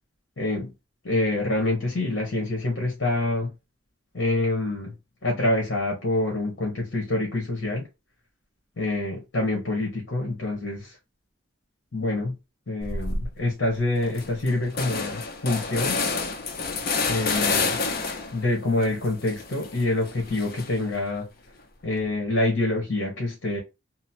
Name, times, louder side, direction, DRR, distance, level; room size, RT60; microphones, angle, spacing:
voice 1, 0.4-0.7 1.0-3.5 4.1-4.9 5.2-7.9 8.8-11.0 11.9-12.3 12.7-16.0 17.1-17.8 18.3-21.3 21.8-23.6, left 2 dB, 65° left, 1.0 m, -26 dB
sound 1, 12.8-13.3 13.7-13.8 14.0-18.4 18.8-20.9, left 4 dB, 50° left, 0.5 m, -29 dB
2.8 x 2.0 x 2.7 m
head